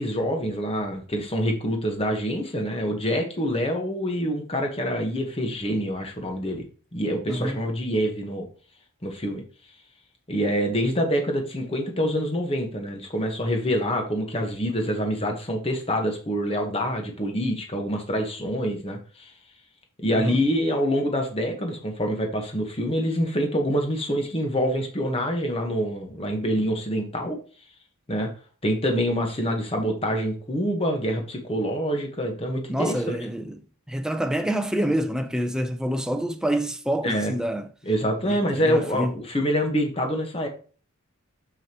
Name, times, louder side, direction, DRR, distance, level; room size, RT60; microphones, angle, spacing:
voice 1, 0.0-6.6 6.9-8.5 9.0-9.4 10.3-19.3 20.0-27.4 28.1-28.3 28.6-33.2 37.0-37.3 37.9-40.5, equal, 25° left, 1.2 m, -26 dB
voice 2, 7.3-7.7 20.1-20.5 32.7-33.6 33.9-37.7 38.2-39.1, right 1 dB, 5° right, 0.5 m, -27 dB
7.2 x 6.6 x 3.0 m
head